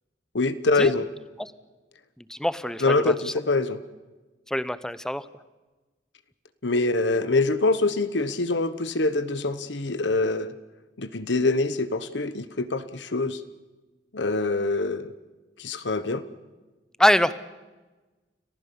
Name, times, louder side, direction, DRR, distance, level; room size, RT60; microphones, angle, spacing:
voice 1, 0.3-1.1 2.8-3.8 6.6-10.5 11.0-13.4 14.1-15.1 15.6-16.2, left 3 dB, 80° left, 12 dB, 1.1 m, -24 dB
voice 2, 2.2-3.3 4.5-5.2 17.0-17.3, left 1 dB, 5° left, 15 dB, 0.8 m, -24 dB
30.0 x 15.0 x 7.0 m, 1.2 s
head